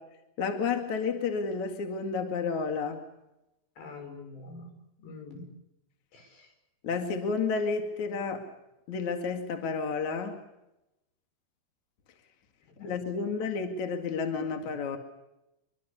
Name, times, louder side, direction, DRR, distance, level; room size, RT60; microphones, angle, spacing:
voice 1, 0.4-3.0 6.8-8.5 8.9-10.4 12.8-15.0, left 5 dB, 50° left, 5 dB, 2.8 m, -31 dB
voice 2, 3.8-4.7 5.0-5.5 6.1-6.5 12.7-12.9, left 3 dB, 65° left, 5 dB, 8.1 m, -45 dB
26.5 x 24.0 x 7.0 m, 0.90 s
omnidirectional pair, 5.4 m